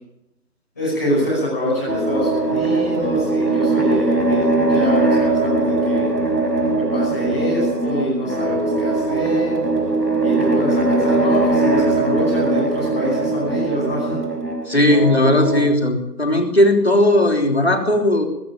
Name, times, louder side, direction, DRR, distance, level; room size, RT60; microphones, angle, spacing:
voice 1, 0.7-6.1 6.9-9.6 10.2-14.2, equal, 10° left, -12 dB, 5.9 m, -25 dB
sound 1, 1.9-15.7, right 2 dB, 80° right, 5.5 m, -20 dB
voice 2, 14.7-18.2, left 1 dB, 40° left, 4 dB, 3.4 m, -16 dB
21.0 x 15.0 x 9.1 m, 0.87 s
figure-of-eight pair, 175°, 49 cm